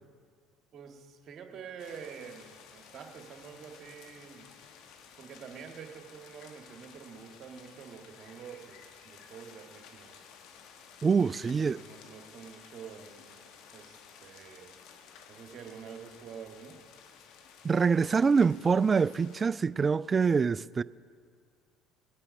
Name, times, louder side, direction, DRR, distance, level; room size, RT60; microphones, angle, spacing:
voice 1, 0.7-4.5 5.2-10.2 11.4-13.3 13.7-14.7 15.3-16.8, right 7 dB, 45° right, 1.7 m, -47 dB
sound 1, 1.8-19.4, left 7 dB, 60° left, 1.2 m, -54 dB
voice 2, 11.0-11.8 17.6-20.8, right 5 dB, 30° right, 0.3 m, -25 dB
20.0 x 8.7 x 5.3 m
hypercardioid pair, 65°, 0 cm